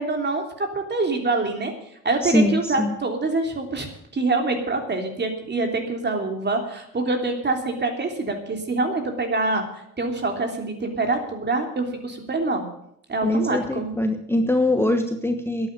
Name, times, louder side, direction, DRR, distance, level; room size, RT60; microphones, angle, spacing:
voice 1, 0.0-1.7 2.0-3.9 4.1-9.6 10.0-12.7 13.1-13.9, right 3 dB, 35° right, 4 dB, 3.2 m, -25 dB
voice 2, 2.2-3.0 13.2-15.7, left 1 dB, 10° left, 5 dB, 1.2 m, -22 dB
11.0 x 9.3 x 9.1 m, 0.74 s
cardioid pair, 90°, 30 cm